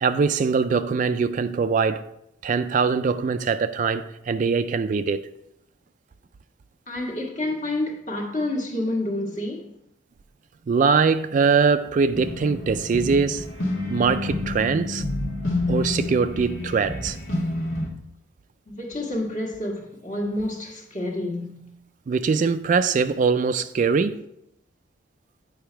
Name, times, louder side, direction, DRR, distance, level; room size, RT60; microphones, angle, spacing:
voice 1, 0.0-2.0 2.4-5.3 10.7-13.5 13.9-15.0 15.7-17.2 22.1-24.2, right 5 dB, 40° right, 0.3 m, -22 dB
voice 2, 6.9-9.7 18.7-21.7, left 1 dB, 40° left, 1.5 m, -29 dB
sound 1, 12.1-17.9, left 2 dB, 90° left, 1.6 m, -29 dB
8.7 x 5.0 x 4.5 m
head